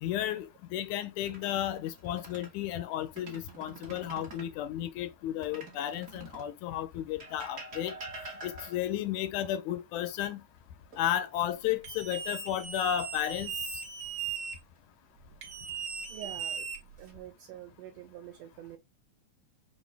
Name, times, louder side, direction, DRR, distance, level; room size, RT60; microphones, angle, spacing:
voice 1, 0.0-8.0 8.4-10.4 11.0-13.5, left 11 dB, 80° left, 2.0 m, -33 dB
sound 1, 1.2-2.6 3.0-4.5 5.4-6.6 7.2-9.0 10.9-11.6 12.0-12.2 15.1-15.7 16.5-17.1, right 3 dB, 45° right, 0.9 m, -47 dB
sound 2, 11.8-14.6 15.4-17.2, right 7 dB, 65° right, 1.3 m, -38 dB
voice 2, 16.1-16.7 17.0-18.8, right 11 dB, 80° right, 1.5 m, -46 dB
6.0 x 2.5 x 3.3 m
omnidirectional pair, 3.5 m